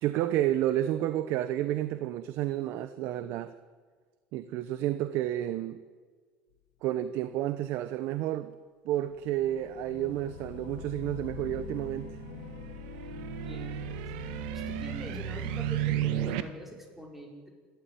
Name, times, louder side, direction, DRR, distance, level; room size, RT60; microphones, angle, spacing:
voice 1, 0.0-3.5 4.3-5.8 6.8-8.5 8.8-12.1, right 13 dB, 60° right, 12 dB, 1.0 m, -30 dB
sound 1, 9.0-16.4, left 17 dB, 80° left, 0.8 m, -45 dB
sound 2, 11.4-16.4, right 11 dB, 85° right, 1.7 m, -34 dB
voice 2, 13.3-13.9 14.7-17.5, equal, 5° right, 0 dB, 5.2 m, -44 dB
29.0 x 13.5 x 9.4 m, 1.6 s
cardioid pair, 145°, 5 cm